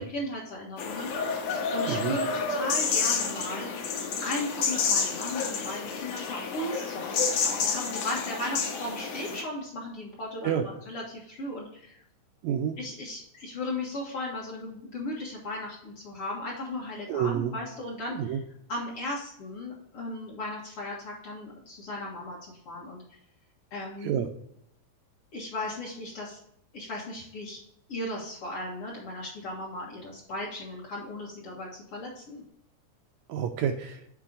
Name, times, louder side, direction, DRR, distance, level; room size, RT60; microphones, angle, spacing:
voice 1, 0.0-3.7 4.2-12.0 12.8-18.4 18.7-22.4 22.7-23.2 23.7-24.2 25.3-26.4 26.7-27.6 27.9-32.4, left 1 dB, 50° left, -4 dB, 2.0 m, -36 dB
sound 1, 0.8-9.4, left 5 dB, 80° left, 2.5 m, -29 dB
voice 2, 12.4-12.8 17.1-17.5 18.1-18.4 24.0-24.3 33.3-34.0, right 9 dB, 80° right, 6 dB, 1.7 m, -28 dB
7.3 x 4.6 x 3.7 m, 0.72 s
omnidirectional pair, 3.6 m